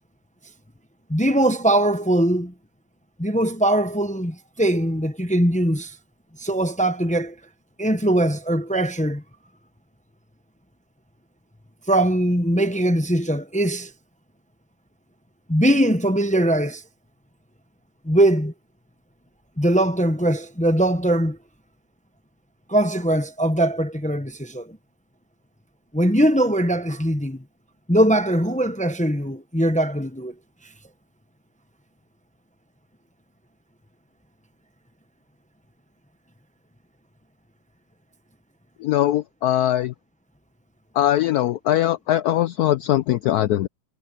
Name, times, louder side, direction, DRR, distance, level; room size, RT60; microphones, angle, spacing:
voice 1, 1.1-2.5 3.2-5.9 6.4-7.3 7.8-9.2 11.9-13.9 15.5-16.8 18.0-18.5 19.6-21.4 22.7-24.8 25.9-27.4 27.9-30.3, right 1 dB, 10° left, 0.4 m, -21 dB
voice 2, 38.8-39.9 41.0-43.7, left 13 dB, 75° left, 0.9 m, -21 dB
omnidirectional pair, 2.1 m